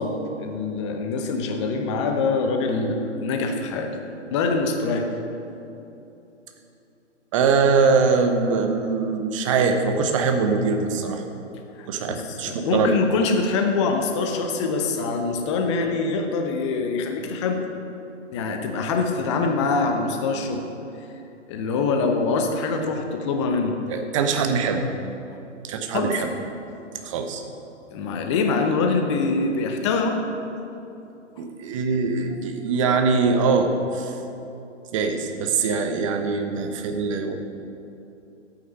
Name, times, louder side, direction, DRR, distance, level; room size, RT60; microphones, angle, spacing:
voice 1, 0.0-3.9 4.3-5.1 11.8-17.7 18.3-20.6 21.5-23.7 25.9-26.1 27.9-30.2, left 4 dB, 25° left, 4 dB, 0.8 m, -24 dB
voice 2, 7.3-11.2 11.9-13.0 23.9-24.9 25.6-26.3 27.0-27.4 31.4-34.1 34.9-37.3, right 4 dB, 25° right, 6 dB, 0.8 m, -22 dB
11.0 x 8.8 x 5.4 m, 2.8 s
figure-of-eight pair, 120°, 36 cm